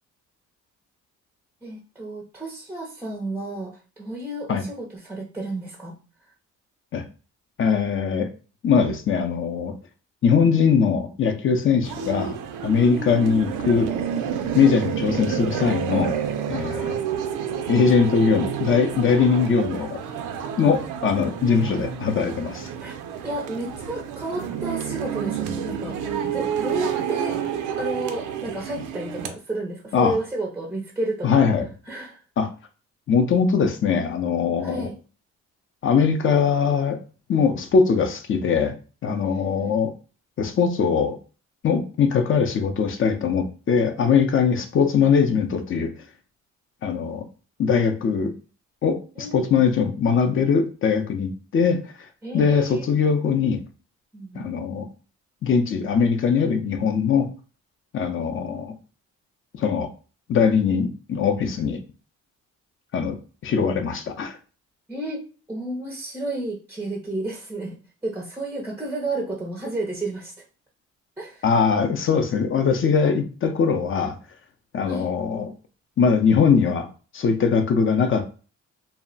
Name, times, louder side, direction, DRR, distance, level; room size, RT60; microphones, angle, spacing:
voice 1, 1.6-5.9 13.1-13.3 21.1-21.3 21.5-21.9 22.8-23.0 23.2-27.4 27.8-31.5 31.9-32.2 34.6-35.0 39.3-39.8 49.2-49.7 52.2-52.9 54.1-54.5 64.9-67.8 68.0-70.3 71.2-71.4 74.9-75.1, right 2 dB, 5° right, 0 dB, 0.5 m, -32 dB
voice 2, 7.6-8.3 8.6-9.7 10.2-12.4 12.6-13.9 14.5-16.1 16.5-17.0 17.7-20.0 20.6-22.7 29.9-30.2 31.2-31.7 32.4-32.5 33.1-34.9 35.8-37.0 37.3-38.8 39.0-39.9 40.4-41.2 41.6-45.9 46.8-47.3 47.6-48.3 48.8-52.1 52.3-53.6 54.3-54.9 55.4-57.3 57.9-58.8 59.6-59.9 60.3-61.8 62.9-64.4 71.4-74.2 74.7-75.5 76.0-78.3, left 6 dB, 45° left, 7 dB, 0.5 m, -21 dB
sound 1, 11.8-29.3, right 8 dB, 85° right, 0.5 m, -29 dB
2.2 x 2.0 x 3.8 m, 0.36 s
cardioid pair, 90°, 30 cm